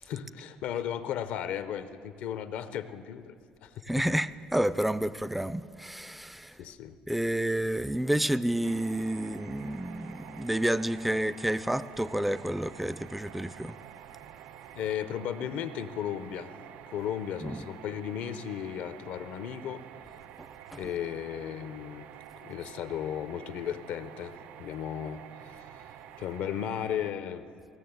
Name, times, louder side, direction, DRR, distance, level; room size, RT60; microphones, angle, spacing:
voice 1, 0.0-3.3 3.6-3.8 6.6-7.0 14.7-16.5 16.9-19.8 20.7-22.1 22.4-24.3 24.6-25.8 26.2-27.4, left 9 dB, 75° left, 0.6 m, -35 dB
voice 2, 3.9-6.6 7.1-13.8 17.4-17.6 20.4-20.5 20.7-20.8, right 1 dB, 5° right, 0.4 m, -30 dB
sound 1, 8.6-27.1, right 11 dB, 70° right, 0.4 m, -49 dB
17.0 x 6.6 x 7.8 m
supercardioid pair, 80°, 3 cm